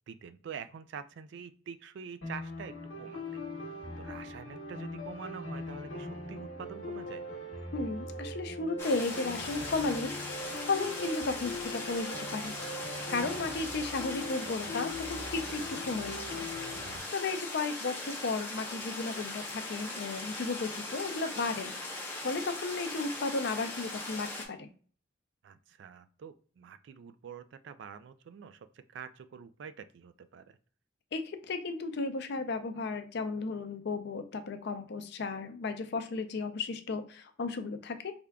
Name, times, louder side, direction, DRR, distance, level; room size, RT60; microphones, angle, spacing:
voice 1, 0.1-3.4 4.0-7.2 15.5-15.8 25.4-30.6, right 6 dB, 60° right, 12 dB, 0.3 m, -46 dB
sound 1, 2.2-17.0, left 1 dB, 75° left, 1.1 m, -41 dB
voice 2, 7.7-10.1 10.7-12.6 13.1-16.5 17.1-21.7 22.2-24.7 31.1-38.1, left 3 dB, 55° left, 9 dB, 0.5 m, -34 dB
sound 2, 8.8-24.5, left 2 dB, 10° left, 0.8 m, -40 dB
3.6 x 3.4 x 2.2 m, 0.42 s
head